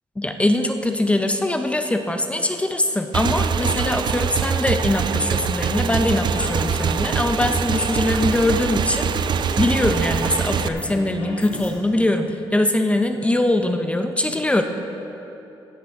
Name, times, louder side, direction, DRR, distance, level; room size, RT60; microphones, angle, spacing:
voice 1, 0.2-14.6, left 1 dB, 15° left, 6 dB, 0.6 m, -22 dB
Motorcycle / Engine, 3.1-10.7, right 6 dB, 55° right, 0.4 m, -23 dB
sound 1, 4.9-5.2 5.7-7.1 7.4-8.6 9.2-11.7, left 2 dB, 75° left, 2.3 m, -37 dB
16.0 x 10.0 x 3.6 m, 3.0 s
cardioid pair, 110°, 9 cm